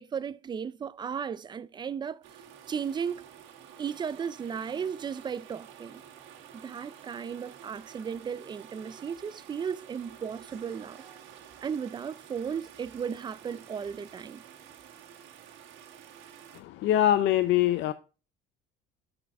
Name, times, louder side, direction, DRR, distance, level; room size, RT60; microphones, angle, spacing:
voice 1, 0.0-2.2 2.7-3.3 3.8-6.0 6.5-11.0 11.6-14.4, right 7 dB, 20° right, 0.4 m, -35 dB
sound 1, 2.2-16.6, right 9 dB, 70° right, 1.7 m, -50 dB
voice 2, 16.6-17.9, left 12 dB, 65° left, 0.5 m, -23 dB
7.5 x 6.2 x 4.8 m
cardioid pair, 140°, 20 cm